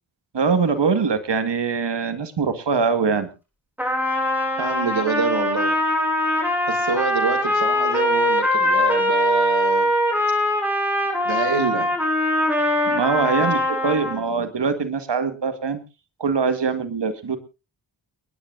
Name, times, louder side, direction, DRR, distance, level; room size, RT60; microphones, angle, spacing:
voice 1, 0.3-3.3 12.9-15.8 16.2-17.4, right 5 dB, 65° right, 2.0 m, -23 dB
Trumpet, 3.8-14.2, left 1 dB, 5° right, 7.8 m, -22 dB
voice 2, 4.6-5.8 6.7-9.9 11.2-11.9 13.4-13.5 14.0-14.3, right 5 dB, 85° right, 2.6 m, -27 dB
30.0 x 10.0 x 2.6 m
cardioid pair, 50°, 45 cm